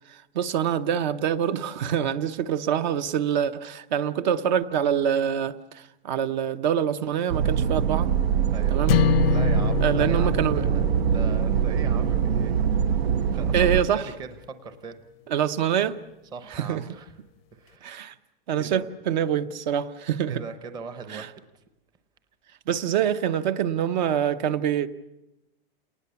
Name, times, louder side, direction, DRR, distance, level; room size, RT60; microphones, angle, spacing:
voice 1, 0.1-8.1 8.7-9.0 9.8-10.6 13.5-14.0 15.3-16.0 16.5-16.8 17.8-18.1 18.5-20.4 21.1-21.3 22.7-24.9, right 9 dB, 50° right, 12 dB, 0.9 m, -25 dB
sound 1, 7.3-13.8, right 8 dB, 80° right, 1.0 m, -23 dB
sound 2, 8.9-13.2, left 14 dB, 75° left, 0.7 m, -28 dB
voice 2, 9.2-12.5 13.3-15.0 16.3-17.2 17.5-17.9 18.5-18.9 20.3-21.6, right 4 dB, 15° right, 10 dB, 0.8 m, -39 dB
28.5 x 19.5 x 7.0 m, 0.94 s
supercardioid pair, 170°, 30 cm